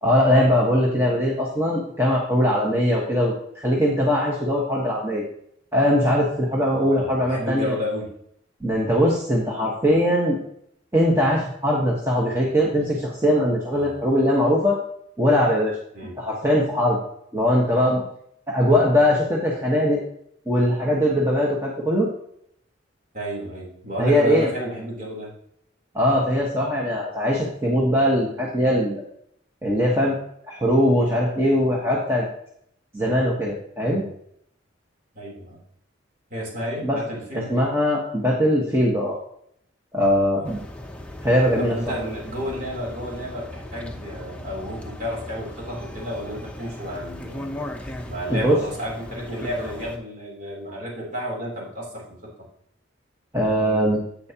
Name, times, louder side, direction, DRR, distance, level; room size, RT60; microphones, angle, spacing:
voice 1, 0.0-5.2 5.7-7.7 8.6-10.4 10.9-14.8 15.2-15.8 16.2-17.0 17.3-18.0 18.5-20.0 20.5-22.1 24.0-24.5 25.9-29.0 29.6-30.2 30.5-32.3 32.9-34.0 36.8-37.0 37.5-39.2 39.9-40.6 41.2-42.0 48.3-48.6 53.3-54.0, equal, 15° right, -4 dB, 1.4 m, -21 dB
voice 2, 6.7-8.1 13.7-14.1 15.9-16.2 23.1-25.3 33.9-34.1 35.1-35.6 36.3-37.6 40.4-40.5 41.6-47.5 48.1-52.3, equal, 45° right, -3 dB, 3.7 m, -32 dB
sound 1, 40.4-50.0, left 1 dB, 5° left, 0.9 m, -37 dB
10.5 x 8.5 x 3.0 m, 0.69 s
head